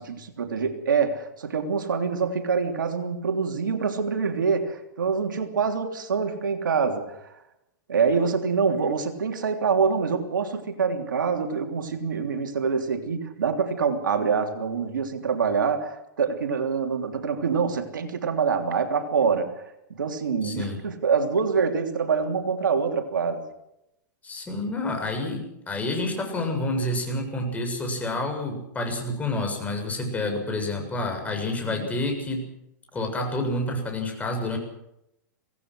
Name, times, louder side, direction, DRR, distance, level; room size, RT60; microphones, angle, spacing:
voice 1, 0.0-7.4 7.9-23.4 31.7-32.0, right 5 dB, 85° right, 5 dB, 3.2 m, -25 dB
voice 2, 20.4-20.8 24.2-32.5 32.9-34.6, left 2 dB, 15° left, 3 dB, 7.2 m, -29 dB
25.5 x 18.0 x 6.4 m, 0.83 s
hypercardioid pair, 120°, 10 cm